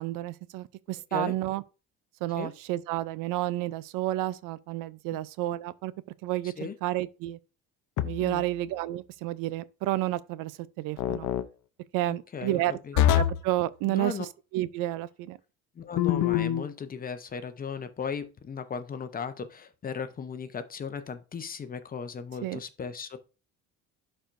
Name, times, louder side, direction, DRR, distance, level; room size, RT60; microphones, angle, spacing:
voice 1, 0.0-1.6 2.2-5.9 6.2-6.5 6.8-7.4 8.0-10.5 10.8-11.3 11.9-14.3 14.5-15.4 22.4-22.6, right 15 dB, 85° right, 0.6 m, -31 dB
voice 2, 6.4-6.8 8.2-8.4 12.1-13.0 13.9-14.3 15.8-23.2, left 6 dB, 30° left, 0.8 m, -37 dB
sound 1, 8.0-8.5 11.0-11.5 13.0-13.5 16.0-16.7, left 12 dB, 65° left, 0.7 m, -25 dB
11.5 x 4.4 x 2.6 m
cardioid pair, 130°, 32 cm